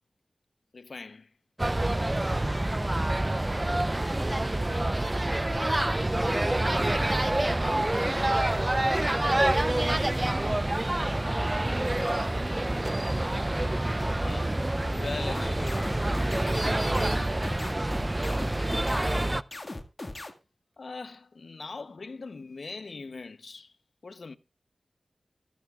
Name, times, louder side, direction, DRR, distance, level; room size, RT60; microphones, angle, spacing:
voice 1, 0.7-1.3 14.1-15.9 20.1-20.3 20.8-23.7 24.0-24.4, left 4 dB, 70° left, 0.9 m, -41 dB
sound 1, 1.6-19.4, right 1 dB, 25° right, 0.5 m, -27 dB
voice 2, 4.1-4.4 5.5-6.9 7.7-8.3 8.8-11.0 17.5-18.5, left 1 dB, 20° left, 1.3 m, -46 dB
sound 2, 15.3-20.3, left 2 dB, 40° left, 1.9 m, -38 dB
23.0 x 10.5 x 2.4 m
cardioid pair, 40°, 0 cm